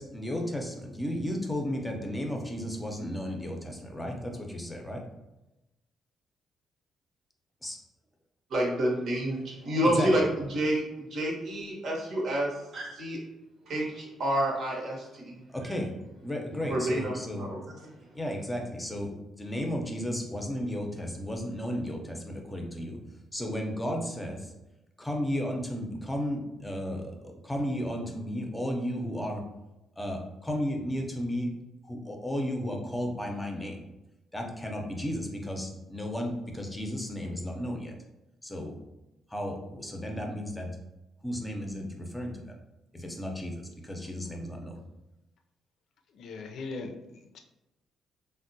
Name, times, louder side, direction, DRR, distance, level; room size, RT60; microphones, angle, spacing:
voice 1, 0.0-5.0 7.6-7.8 9.8-10.3 15.5-15.9 16.2-17.5 18.1-19.1 19.4-23.0 23.3-24.5 25.0-29.4 30.0-31.5 31.8-33.8 34.3-37.9 38.4-38.8 39.3-40.7 41.2-42.5 42.9-44.8, equal, 10° left, 1 dB, 0.6 m, -34 dB
voice 2, 8.5-10.2 10.5-10.8 11.1-13.2 13.7-15.4 16.7-17.6, right 1 dB, 65° right, -2 dB, 0.9 m, -29 dB
voice 3, 46.1-47.4, left 3 dB, 70° left, 4 dB, 0.4 m, -40 dB
3.4 x 2.1 x 2.6 m, 0.97 s
cardioid pair, 90°, 0 cm